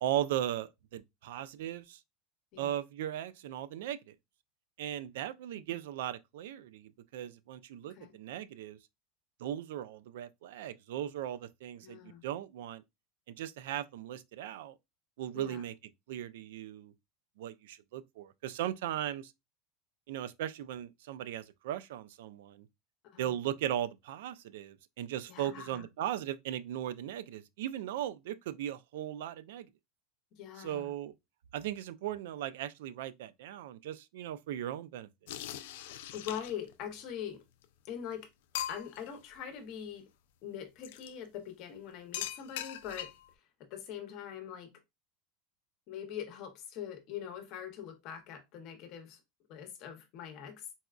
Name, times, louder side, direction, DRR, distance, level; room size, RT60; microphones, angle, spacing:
voice 1, 0.0-2.0 2.6-4.0 4.8-8.8 9.4-12.8 13.3-14.8 15.2-15.7 16.1-16.9 17.4-19.3 20.1-22.7 23.2-29.7 30.6-31.1 31.5-35.1, right 11 dB, 85° right, 0.3 m, -38 dB
voice 2, 11.8-12.2 15.3-15.6 23.1-23.3 25.3-25.9 30.3-30.9 35.5-35.7 36.1-37.4 37.8-38.3 38.7-40.0 40.4-43.1 43.7-44.7 45.9-49.2 49.5-50.6, left 9 dB, 45° left, 0.8 m, -43 dB
sound 1, 35.3-36.7 37.6-37.7 38.1-38.2 38.5-39.1 40.8-41.1 42.1-43.3, left 12 dB, 80° left, 0.3 m, -40 dB
4.0 x 2.2 x 2.4 m
supercardioid pair, 160°, 0 cm